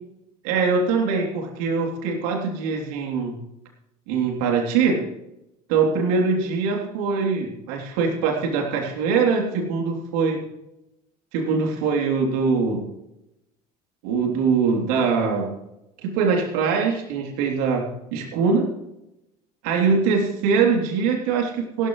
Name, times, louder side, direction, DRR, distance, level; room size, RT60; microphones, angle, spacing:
voice 1, 0.4-3.4 4.1-5.1 5.7-10.4 11.3-12.8 14.0-15.5 16.0-18.7 19.6-21.9, right 5 dB, 75° right, 1 dB, 3.3 m, -22 dB
16.0 x 13.0 x 3.3 m, 0.88 s
hypercardioid pair, 70°, 20 cm